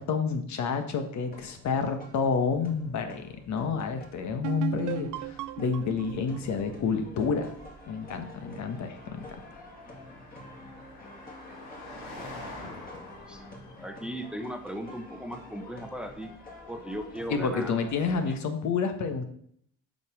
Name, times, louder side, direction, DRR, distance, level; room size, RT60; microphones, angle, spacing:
voice 1, 0.0-7.5 7.9-9.3 17.3-19.2, left 5 dB, 65° left, 7 dB, 1.4 m, -29 dB
sound 1, 1.2-18.4, left 2 dB, 30° left, 2.4 m, -49 dB
Car passing by, 2.2-17.8, left 1 dB, 90° left, 3.4 m, -50 dB
sound 2, 4.4-8.0, right 14 dB, 75° right, 0.5 m, -37 dB
voice 2, 11.9-13.4 13.8-16.3 16.7-17.8 18.3-18.4, equal, 5° right, 6 dB, 0.8 m, -38 dB
7.9 x 5.6 x 6.2 m, 0.65 s
cardioid pair, 125°, 31 cm